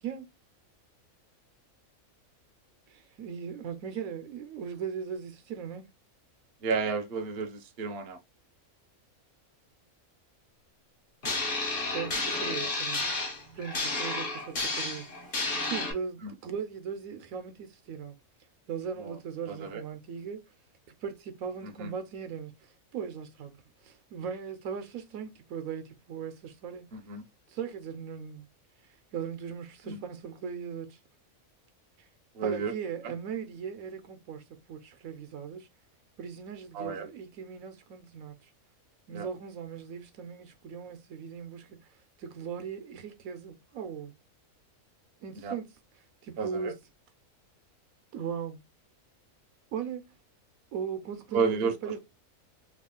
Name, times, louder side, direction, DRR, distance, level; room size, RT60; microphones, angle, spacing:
voice 1, 2.9-5.9 11.8-13.0 13.5-18.2 18.7-20.4 21.0-23.6 23.8-26.9 27.5-28.5 29.1-31.0 32.4-35.7 36.2-38.5 39.1-41.9 42.2-44.1 45.2-45.7 46.2-46.8 48.1-48.7 49.7-50.1 50.7-52.0, right 7 dB, 80° right, 1.1 m, -38 dB
voice 2, 6.6-8.2 12.6-12.7 16.2-16.3 19.0-19.2 19.5-19.8 21.6-21.9 26.9-27.2 29.8-30.0 32.3-32.7 36.7-37.1 39.1-39.3 45.4-45.5 46.4-46.7 51.3-51.7, right 5 dB, 55° right, 0.8 m, -31 dB
sound 1, 11.2-15.9, left 3 dB, 45° left, 1.0 m, -31 dB
3.1 x 2.4 x 3.6 m
omnidirectional pair, 1.5 m